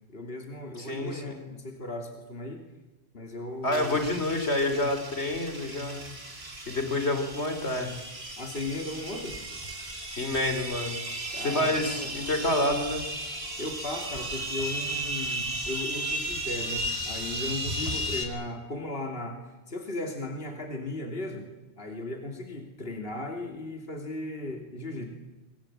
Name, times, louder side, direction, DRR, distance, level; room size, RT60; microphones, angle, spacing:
voice 1, 0.1-2.6 3.1-4.0 8.4-9.4 11.3-12.1 13.6-21.4 21.8-25.1, left 2 dB, 60° left, 3 dB, 3.1 m, -36 dB
voice 2, 0.8-1.4 3.6-6.0 6.7-7.9 10.2-11.0 11.4-13.0, left 1 dB, 80° left, 7 dB, 3.6 m, -28 dB
sound 1, 3.7-18.2, right 1 dB, 65° right, 4.1 m, -35 dB
25.0 x 24.0 x 8.9 m, 1.1 s
omnidirectional pair, 1.1 m